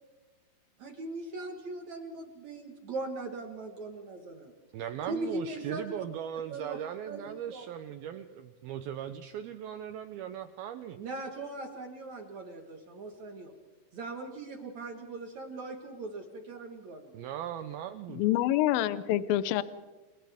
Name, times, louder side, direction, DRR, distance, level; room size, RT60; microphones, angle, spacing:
voice 1, 0.8-4.5 5.1-6.0 6.5-6.8 7.1-7.7 8.1-8.2 11.0-13.5 13.9-17.2, right 2 dB, 55° right, 4 dB, 2.2 m, -40 dB
voice 2, 4.7-11.0 17.1-18.3, right 10 dB, 80° right, 9 dB, 2.2 m, -38 dB
voice 3, 18.1-19.6, left 13 dB, 80° left, 14 dB, 2.1 m, -26 dB
29.5 x 28.0 x 3.6 m, 1.3 s
omnidirectional pair, 5.2 m